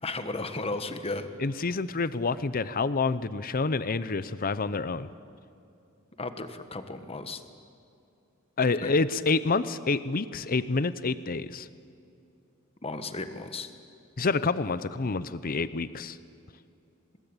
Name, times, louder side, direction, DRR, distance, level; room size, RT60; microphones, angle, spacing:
voice 1, 0.0-1.3 6.2-7.4 8.8-8.9 12.8-13.7, left 3 dB, 30° left, 9 dB, 1.4 m, -34 dB
voice 2, 1.4-5.1 8.6-11.7 14.2-16.2, left 4 dB, 45° left, 15 dB, 0.7 m, -28 dB
24.5 x 20.5 x 9.0 m, 2.6 s
head